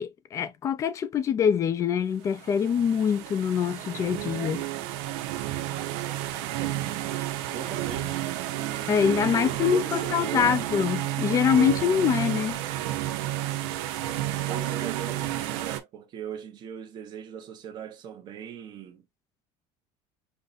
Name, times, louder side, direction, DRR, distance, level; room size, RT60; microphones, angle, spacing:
voice 1, 0.0-4.6 8.9-12.6, left 7 dB, 25° left, 0.3 m, -24 dB
sound 1, 2.4-15.8, right 14 dB, 90° right, 0.6 m, -31 dB
voice 2, 7.5-10.5 14.5-19.0, right 8 dB, 35° right, 0.8 m, -39 dB
5.4 x 2.1 x 2.4 m
cardioid pair, 170°, 13 cm